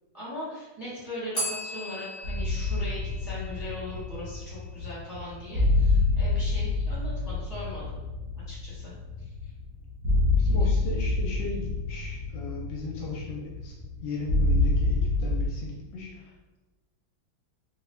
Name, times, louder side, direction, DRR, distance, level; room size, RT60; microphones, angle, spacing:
voice 1, 0.1-8.0 8.5-8.9 10.6-10.7, left 1 dB, 15° right, -8 dB, 0.7 m, -39 dB
Bell, 1.3-4.2, equal, 40° left, 1.3 m, -37 dB
sound 1, 2.2-15.5, left 2 dB, 55° right, 0.8 m, -27 dB
voice 2, 10.4-16.6, left 3 dB, 75° left, -2 dB, 1.2 m, -37 dB
3.8 x 2.2 x 3.3 m, 1.1 s
omnidirectional pair, 2.2 m